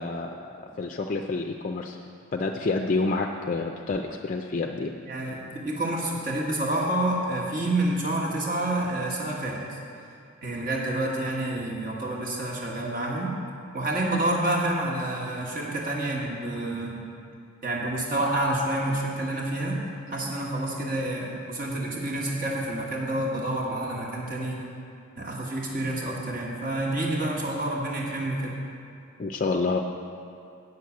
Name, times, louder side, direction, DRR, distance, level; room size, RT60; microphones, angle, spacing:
voice 1, 0.0-2.0 2.3-4.9 29.2-29.8, left 3 dB, 40° left, 2 dB, 0.4 m, -28 dB
voice 2, 5.1-9.8 10.4-13.4 13.7-17.1 17.6-24.6 25.2-28.5, right 1 dB, 40° right, -3 dB, 1.5 m, -28 dB
8.5 x 6.2 x 8.3 m, 2.5 s
head